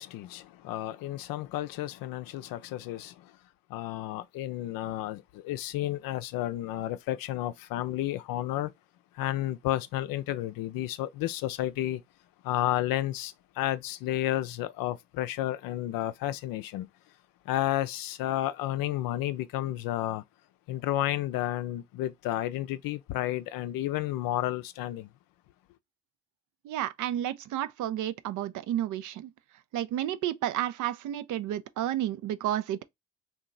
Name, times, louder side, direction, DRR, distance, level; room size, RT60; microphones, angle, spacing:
voice 1, 0.0-3.3 3.7-8.7 9.1-12.0 12.4-16.9 17.5-20.2 20.7-25.1, left 14 dB, 65° left, 0.5 m, -31 dB
voice 2, 26.6-29.3 29.7-32.8, right 12 dB, 55° right, 0.5 m, -31 dB
2.8 x 2.4 x 3.7 m
hypercardioid pair, 50°, 37 cm